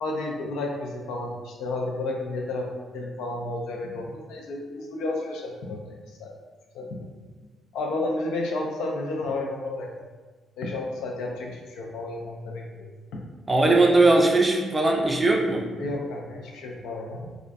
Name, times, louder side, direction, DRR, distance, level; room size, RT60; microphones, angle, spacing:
voice 1, 0.0-6.3 6.7-7.0 7.7-9.9 10.6-13.2 15.8-17.4, left 2 dB, 90° left, 0 dB, 0.4 m, -32 dB
voice 2, 13.5-15.7, right 2 dB, 20° right, 1 dB, 0.4 m, -19 dB
2.4 x 2.1 x 2.5 m, 1.3 s
cardioid pair, 90°, 0 cm